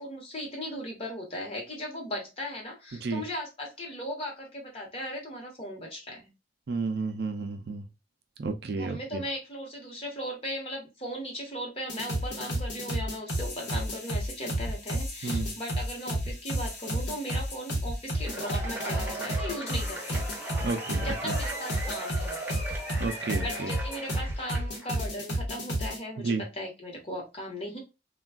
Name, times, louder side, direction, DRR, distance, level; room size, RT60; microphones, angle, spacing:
voice 1, 0.0-6.3 8.7-20.2 21.0-22.4 23.4-27.8, equal, 30° left, 0.9 m, -37 dB
voice 2, 6.7-7.8 8.4-9.2 15.2-15.5 20.6-21.3 23.0-23.7 26.2-26.4, right 4 dB, 60° right, 0.4 m, -31 dB
sound 1, 11.9-26.0, equal, 75° left, 1.0 m, -31 dB
Cheering / Applause / Crowd, 18.2-25.0, right 2 dB, 10° right, 0.7 m, -38 dB
3.3 x 2.2 x 2.3 m
head